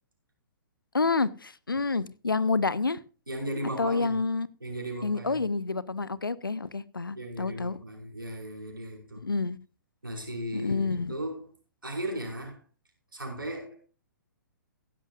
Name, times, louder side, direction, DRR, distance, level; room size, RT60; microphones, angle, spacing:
voice 1, 0.9-3.0 3.8-4.5 5.0-7.8 9.2-9.6 10.5-11.1, left 4 dB, 75° left, 0.7 m, -28 dB
voice 2, 3.3-4.1 4.6-5.4 7.1-9.2 10.0-11.5 11.8-12.6 13.1-13.8, right 1 dB, 80° right, 5.3 m, -36 dB
15.5 x 12.0 x 2.5 m
figure-of-eight pair, 120°, 11 cm